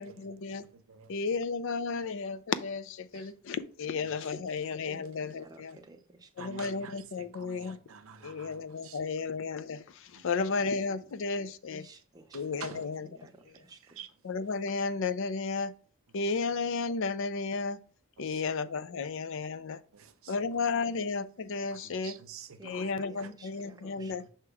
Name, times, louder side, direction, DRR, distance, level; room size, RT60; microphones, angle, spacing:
voice 1, 0.0-0.7 1.1-5.8 6.4-7.8 8.2-11.8 12.3-13.1 14.2-15.7 16.1-17.8 18.2-19.8 20.3-22.2 22.6-24.2, left 4 dB, 60° left, 0.4 m, -33 dB
voice 2, 0.7-1.1 3.1-3.3 4.0-4.1 4.4-4.8 6.4-9.0 10.1-10.4 12.3-12.9 13.9-14.1 18.2-18.5 19.9-20.9 21.7-23.3 24.0-24.3, right 7 dB, 70° right, 0.7 m, -49 dB
voice 3, 4.8-6.6 11.7-14.0 22.6-24.1, right 1 dB, 15° right, 0.7 m, -53 dB
6.8 x 2.9 x 4.7 m
head